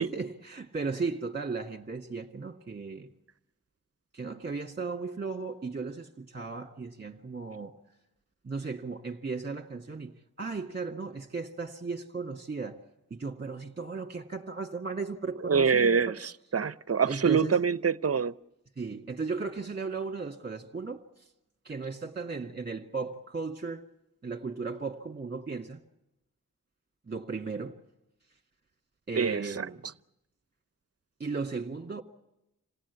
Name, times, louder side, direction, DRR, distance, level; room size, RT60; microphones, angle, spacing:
voice 1, 0.0-3.1 4.1-7.8 8.4-12.8 13.1-16.2 17.1-17.6 18.8-21.3 21.6-23.8 24.2-25.8 27.1-27.8 29.1-29.8 31.2-32.0, right 4 dB, 30° right, 2.1 m, -36 dB
voice 2, 15.4-18.3 29.2-29.7, right 6 dB, 50° right, 0.8 m, -25 dB
27.5 x 17.5 x 8.3 m
cardioid pair, 45°, 32 cm